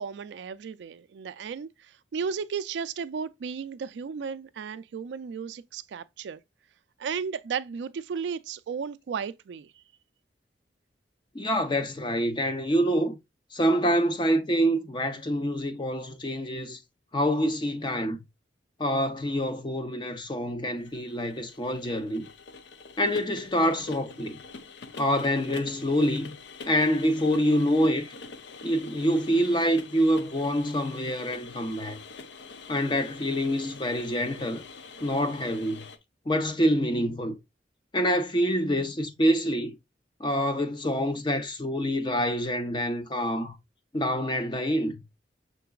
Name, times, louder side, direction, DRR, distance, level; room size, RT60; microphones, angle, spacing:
voice 1, 0.0-6.4 7.0-9.8, right 6 dB, 70° right, 0.3 m, -34 dB
voice 2, 11.3-13.2 13.5-16.8 17.1-18.2 18.8-22.3 23.0-24.4 25.0-26.3 26.6-28.1 28.6-32.0 32.7-34.6 35.0-35.8 36.3-37.4 37.9-39.7 40.2-43.6 43.9-45.0, equal, 25° left, 0.5 m, -26 dB
sound 1, 20.8-36.0, left 4 dB, 75° left, 0.5 m, -45 dB
5.8 x 3.8 x 2.3 m
head